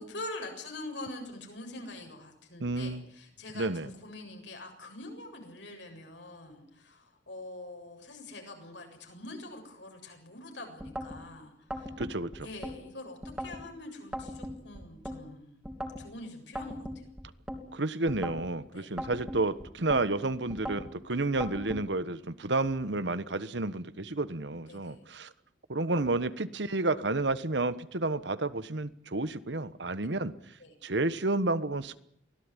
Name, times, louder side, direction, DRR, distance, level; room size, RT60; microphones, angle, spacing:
voice 1, 0.0-12.0 12.4-15.6 16.0-17.0 18.7-18.9 24.7-25.0 30.6-30.7, left 2 dB, 80° left, 3 dB, 7.5 m, -44 dB
voice 2, 2.6-3.0 3.5-3.9 12.0-12.5 17.7-25.3 25.7-30.3 30.8-32.0, right 2 dB, 75° right, 14 dB, 1.3 m, -31 dB
sound 1, 10.8-11.2 11.7-12.8 13.2-13.6 14.1-15.2 15.6-16.1 16.6-17.6 18.1-18.5 19.0-20.0 20.5-20.9 21.4-21.8, equal, 5° right, 3.1 m, -38 dB
24.0 x 17.5 x 9.9 m, 0.70 s
head